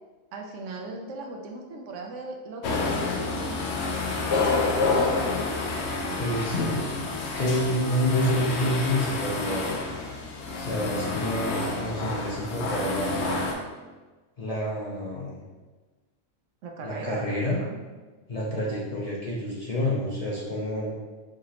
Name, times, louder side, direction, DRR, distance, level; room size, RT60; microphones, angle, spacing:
voice 1, 0.3-3.7 6.0-6.5 16.6-17.8, right 3 dB, 80° right, 1 dB, 1.0 m, -38 dB
sound 1, 2.6-13.5, left 3 dB, 65° left, 0.8 m, -28 dB
voice 2, 6.2-6.8 7.2-9.8 10.6-13.4 14.4-15.4 16.8-17.6 18.3-20.9, equal, 40° left, -5 dB, 0.6 m, -28 dB
4.8 x 2.9 x 2.8 m, 1.3 s
omnidirectional pair, 1.3 m